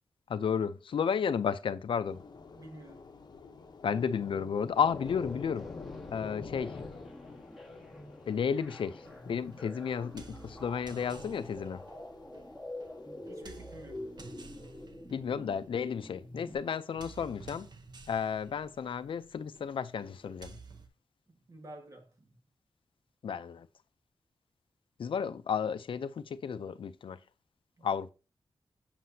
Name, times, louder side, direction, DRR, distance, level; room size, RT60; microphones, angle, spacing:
voice 1, 0.3-2.2 3.8-5.7 6.1-6.8 8.3-11.8 15.1-17.7 18.1-20.6 23.2-23.7 25.0-27.2 27.8-28.1, left 7 dB, 80° left, 0.5 m, -32 dB
Thunder / Rain, 2.0-14.9, left 4 dB, 50° left, 0.8 m, -49 dB
voice 2, 2.5-3.1 13.2-14.0 21.3-22.3 27.8-27.9, right 1 dB, 40° right, 1.7 m, -51 dB
sound 1, 4.9-16.6, left 1 dB, ahead, 1.5 m, -47 dB
sound 2, 9.1-20.9, right 4 dB, 55° right, 0.9 m, -53 dB
7.6 x 6.6 x 2.7 m
wide cardioid pair, 165°, 9 cm